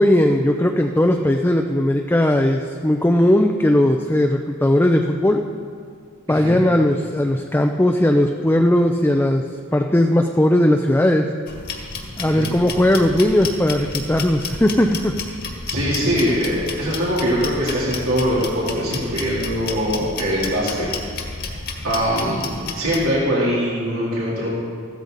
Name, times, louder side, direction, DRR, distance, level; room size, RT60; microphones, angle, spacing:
voice 1, 0.0-5.4 6.3-9.4 9.7-11.2 12.2-15.1, left 1 dB, 10° left, 3 dB, 0.5 m, -18 dB
voice 2, 6.3-6.6 12.2-12.5 15.7-20.9 21.8-24.5, equal, 90° right, -7 dB, 3.3 m, -22 dB
sound 1, 11.5-23.1, left 4 dB, 50° left, 1.8 m, -31 dB
14.5 x 13.5 x 4.0 m, 2.1 s
head